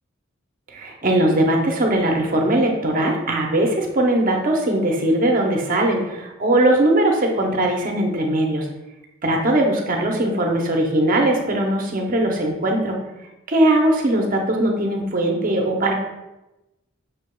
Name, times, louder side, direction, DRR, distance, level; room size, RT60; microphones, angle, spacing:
voice 1, 0.7-8.7 9.2-13.0 13.5-15.9, right 1 dB, 40° right, 1 dB, 0.6 m, -20 dB
5.7 x 3.3 x 2.2 m, 0.99 s
head